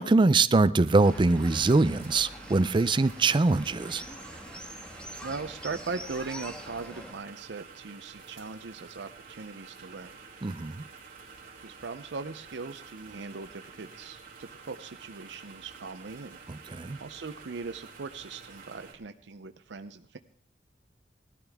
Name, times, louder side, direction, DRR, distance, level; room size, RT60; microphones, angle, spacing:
voice 1, 0.0-4.0 10.4-10.8 16.5-17.0, right 3 dB, 25° right, 0.4 m, -23 dB
sound 1, 0.8-18.9, right 5 dB, 55° right, 2.7 m, -50 dB
sound 2, 1.0-7.1, equal, 5° left, 1.3 m, -44 dB
voice 2, 5.2-10.2 11.4-20.2, right 4 dB, 70° right, 0.6 m, -40 dB
18.5 x 12.5 x 3.5 m
head